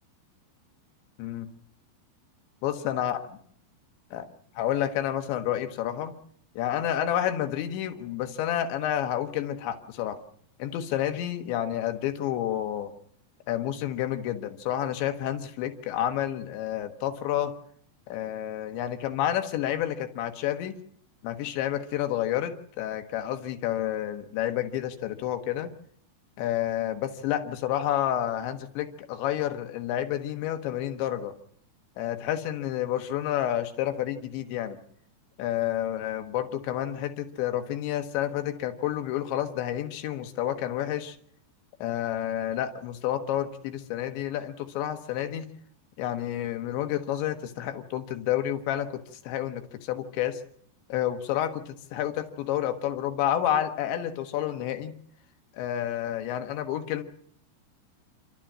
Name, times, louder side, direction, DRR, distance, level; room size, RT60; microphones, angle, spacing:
voice 1, 2.6-3.2 4.1-4.3 4.6-6.1 6.6-10.2 10.6-12.9 13.5-17.5 18.1-20.8 21.2-25.7 26.4-31.3 32.0-34.8 35.4-41.2 41.8-45.5 46.0-50.4 50.9-54.9 55.5-57.0, left 11 dB, 90° left, 7 dB, 3.7 m, -29 dB
29.0 x 13.0 x 7.5 m, 0.65 s
omnidirectional pair, 5.0 m